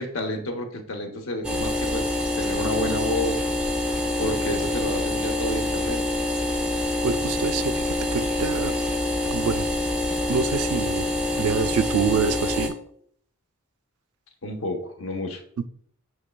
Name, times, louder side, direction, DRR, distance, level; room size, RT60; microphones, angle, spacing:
voice 1, 0.0-2.1 2.4-3.6 4.2-6.1 14.4-15.4, left 1 dB, 65° left, 3 dB, 0.8 m, -30 dB
sound 1, 1.4-12.7, left 1 dB, 5° right, 0.5 m, -26 dB
voice 2, 7.0-8.7 9.2-9.7 10.3-11.1 11.4-12.7, right 5 dB, 80° right, 12 dB, 0.3 m, -26 dB
6.6 x 3.2 x 2.2 m, 0.63 s
head